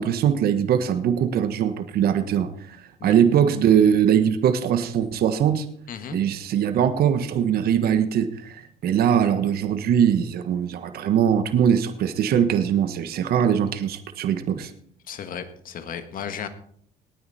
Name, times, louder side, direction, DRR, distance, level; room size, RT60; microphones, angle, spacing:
voice 1, 0.0-5.7 6.1-14.7, right 8 dB, 65° right, 9 dB, 1.3 m, -21 dB
voice 2, 5.9-6.2 15.1-16.5, left 8 dB, 55° left, 9 dB, 1.8 m, -34 dB
18.5 x 9.4 x 4.3 m, 0.62 s
cardioid pair, 110°, 17 cm